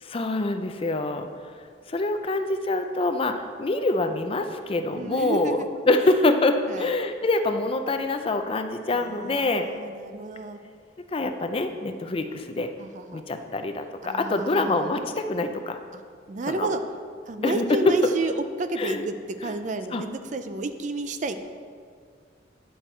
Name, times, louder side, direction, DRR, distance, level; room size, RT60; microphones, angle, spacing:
voice 1, 0.0-1.3 1.9-9.7 11.1-12.7 13.1-15.8 16.5-16.7 17.4-17.9 18.8-19.1 19.4-19.5 19.9-20.0, left 2 dB, 30° left, 7 dB, 0.4 m, -25 dB
voice 2, 4.9-5.7 6.0-6.3 6.7-6.9 8.9-10.6 12.8-13.2 14.0-14.9 15.9-16.0 16.3-16.8 17.3-21.4, right 3 dB, 40° right, 8 dB, 0.4 m, -31 dB
10.0 x 6.1 x 4.4 m, 2.1 s
head